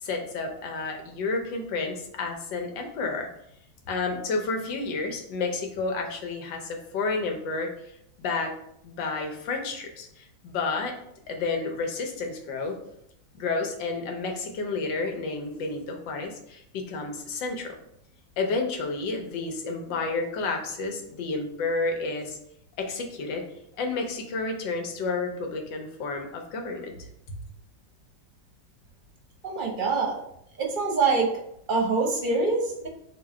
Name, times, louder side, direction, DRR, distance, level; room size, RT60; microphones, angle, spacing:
voice 1, 0.0-3.3 3.9-8.5 8.8-10.9 11.3-12.8 13.3-17.8 18.4-22.4 22.8-23.4 23.8-27.1, left 3 dB, 85° left, 2 dB, 1.5 m, -31 dB
voice 2, 29.4-30.2 30.6-31.3 31.7-32.9, right 4 dB, 35° right, -1 dB, 0.8 m, -25 dB
4.0 x 2.8 x 4.7 m, 0.74 s
omnidirectional pair, 1.9 m